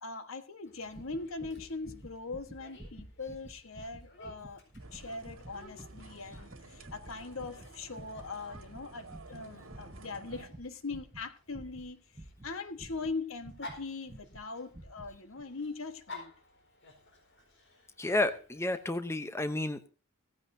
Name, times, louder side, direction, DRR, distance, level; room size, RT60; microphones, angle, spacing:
voice 1, 0.0-4.6 4.9-12.0 12.4-16.3, left 3 dB, 80° left, 9 dB, 1.4 m, -41 dB
Dog, 0.6-19.0, left 2 dB, 60° left, 4.4 m, -55 dB
sound 1, 0.9-13.8 14.1-14.4 14.7-15.1 15.4-15.5, right 1 dB, 25° right, 1.0 m, -51 dB
sound 2, 4.8-10.5, right 2 dB, 75° right, 2.0 m, -52 dB
voice 2, 18.0-19.9, left 2 dB, 15° left, 10 dB, 0.7 m, -31 dB
16.5 x 14.5 x 2.7 m, 0.34 s
head